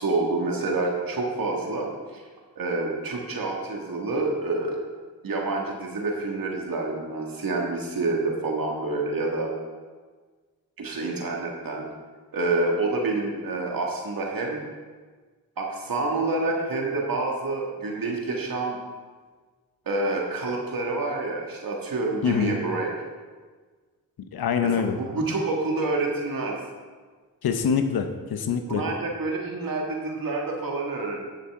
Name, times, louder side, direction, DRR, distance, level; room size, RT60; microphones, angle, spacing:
voice 1, 0.0-2.2 2.6-4.8 5.2-9.5 10.8-11.9 12.3-14.6 15.6-18.8 19.9-22.9 24.6-26.6 28.7-31.2, right 3 dB, 70° right, 0 dB, 1.9 m, -28 dB
voice 2, 22.2-22.5 24.3-25.0 27.4-28.8, left 7 dB, 85° left, 7 dB, 0.9 m, -24 dB
15.5 x 5.8 x 3.6 m, 1.4 s
cardioid pair, 50°, 36 cm